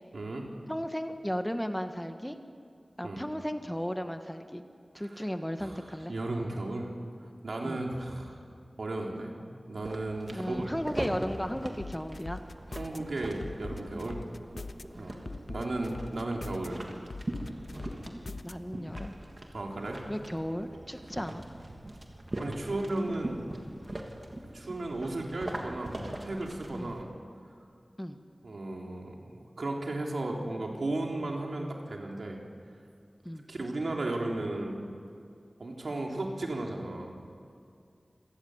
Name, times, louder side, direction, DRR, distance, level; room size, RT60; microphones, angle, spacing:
voice 1, 0.1-0.5 3.0-3.2 5.6-5.7 6.1-6.9 7.4-8.4 8.8-9.4 9.7-10.6 12.7-14.2 15.0-16.8 19.5-20.0 22.4-23.4 24.5-27.1 28.4-32.4 33.5-34.8 35.6-37.1, right 2 dB, 90° right, 0 dB, 3.7 m, -35 dB
voice 2, 0.7-2.4 3.0-4.6 4.9-6.1 7.6-7.9 10.3-12.4 14.9-15.1 18.0-19.1 20.1-21.4 26.7-26.9 28.0-28.2 33.2-33.5, equal, 5° left, 7 dB, 1.5 m, -35 dB
sound 1, 9.8-27.0, right 1 dB, 45° right, 3.1 m, -42 dB
sound 2, 11.8-13.0 13.4-14.8 15.3-16.7 17.1-18.5 18.9-19.1, left 3 dB, 70° left, 0.7 m, -41 dB
27.0 x 18.0 x 8.1 m, 2.4 s
wide cardioid pair, 65°, 0 cm